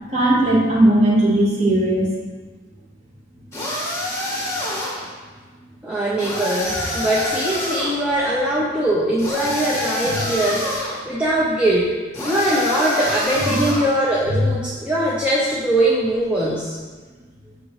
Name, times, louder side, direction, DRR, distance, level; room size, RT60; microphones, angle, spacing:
voice 1, 0.1-2.1 10.0-10.2 13.4-13.6 14.3-14.5, right 1 dB, 35° right, -3 dB, 0.8 m, -17 dB
sound 1, 3.5-5.1 6.2-8.0 9.2-11.0 12.1-14.0, left 1 dB, 15° left, 0.7 m, -26 dB
voice 2, 5.8-16.8, right 1 dB, 5° right, -7 dB, 0.4 m, -21 dB
6.1 x 2.9 x 2.8 m, 1.4 s
head